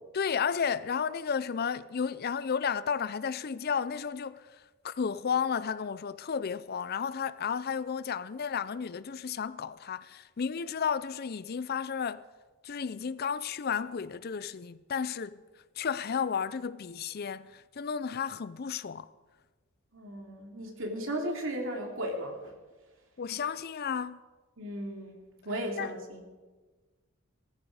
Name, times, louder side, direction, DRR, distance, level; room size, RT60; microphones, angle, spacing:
voice 1, 0.1-4.6 4.8-12.2 12.6-15.4 15.8-19.1 23.2-24.2 25.8-25.9, left 6 dB, 45° left, 0.5 m, -33 dB
voice 2, 19.9-22.5 24.6-25.2 25.4-26.2, right 1 dB, 60° right, 2.7 m, -35 dB
18.5 x 14.5 x 4.9 m
head